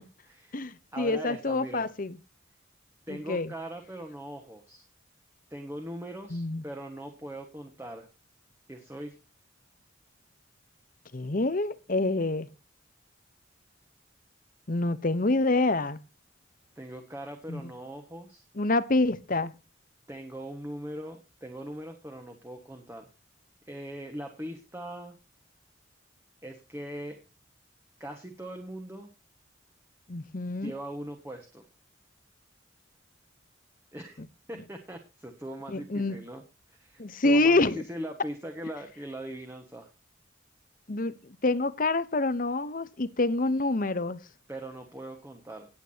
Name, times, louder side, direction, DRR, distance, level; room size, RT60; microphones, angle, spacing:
voice 1, 0.0-0.6 0.9-1.9 3.1-4.8 5.5-8.1 8.7-9.1 16.7-18.4 20.1-23.1 23.7-25.2 26.4-27.2 28.0-29.1 30.6-31.6 33.9-34.2 34.5-36.4 36.7-39.9 44.5-45.7, right 1 dB, 15° right, 1.5 m, -40 dB
voice 2, 0.5-2.1 3.1-3.5 6.3-6.6 11.1-12.5 14.7-16.0 17.5-17.6 18.6-19.5 30.1-30.7 35.7-36.2 37.0-37.8 40.9-41.1 41.4-44.2, left 2 dB, 45° left, 0.9 m, -27 dB
18.5 x 8.4 x 2.8 m
head